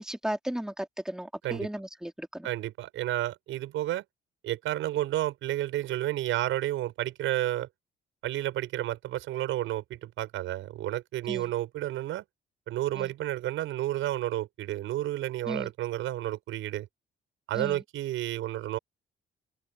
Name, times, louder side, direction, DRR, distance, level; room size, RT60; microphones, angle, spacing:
voice 1, 0.0-2.5 11.3-11.5 13.0-13.1 15.5-15.7 17.5-17.8, right 1 dB, 5° right, 3.0 m, -35 dB
voice 2, 2.4-4.0 4.4-7.7 8.2-12.2 12.7-16.9 17.5-18.8, right 14 dB, 90° right, 6.1 m, -31 dB
cardioid pair, 90°, 20 cm